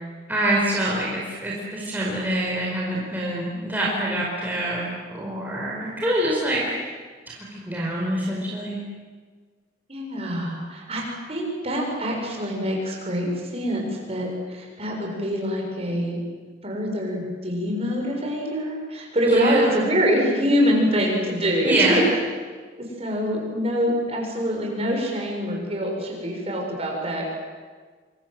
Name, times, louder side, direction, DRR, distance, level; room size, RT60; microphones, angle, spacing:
voice 1, 0.3-6.6 7.3-8.8 19.2-19.7 21.6-22.0, right 1 dB, 10° right, -4 dB, 5.0 m, -25 dB
voice 2, 9.9-11.0 11.3-16.2 16.6-22.0 22.8-27.3, equal, 35° right, 0 dB, 7.1 m, -25 dB
27.5 x 26.0 x 7.9 m, 1.5 s
head